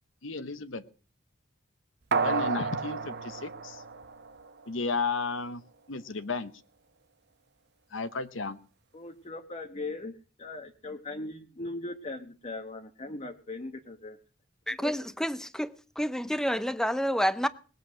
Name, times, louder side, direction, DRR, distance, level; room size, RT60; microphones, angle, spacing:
voice 1, 0.2-0.8 2.2-3.8 4.7-5.6 5.9-6.5 7.9-8.6, left 4 dB, 75° left, 1.0 m, -33 dB
sound 1, 2.1-4.7 5.0-5.1, right 4 dB, 60° right, 1.0 m, -31 dB
voice 2, 8.9-14.2 14.8-14.9, left 2 dB, 35° left, 1.2 m, -39 dB
voice 3, 14.7-17.5, equal, 5° left, 0.7 m, -29 dB
20.0 x 8.3 x 6.3 m
head